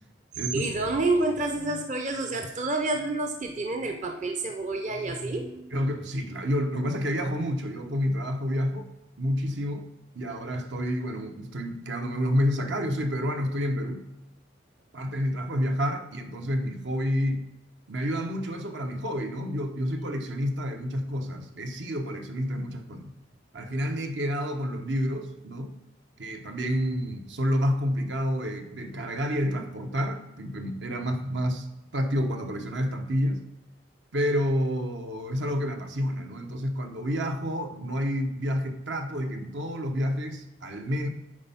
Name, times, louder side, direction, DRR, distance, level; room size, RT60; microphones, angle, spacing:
voice 1, 0.5-5.7, right 2 dB, 40° right, 4 dB, 0.7 m, -28 dB
voice 2, 5.7-8.9 9.2-9.9 10.1-14.0 14.9-17.5 17.9-23.1 23.5-25.8 26.2-31.7 31.9-33.4 34.1-41.1, equal, 65° right, 5 dB, 0.9 m, -29 dB
9.7 x 4.4 x 5.6 m, 0.96 s
head